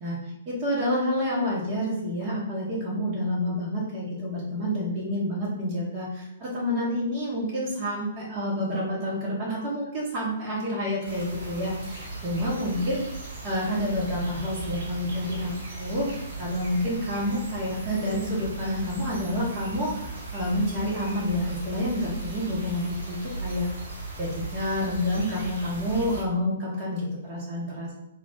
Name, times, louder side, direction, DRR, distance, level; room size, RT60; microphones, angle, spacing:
voice 1, 0.5-23.7 24.2-27.9, left 1 dB, 30° right, -8 dB, 1.2 m, -29 dB
sound 1, 11.0-26.2, right 2 dB, 65° right, 1.2 m, -37 dB
3.1 x 2.4 x 3.8 m, 0.85 s
hypercardioid pair, 125°, 0 cm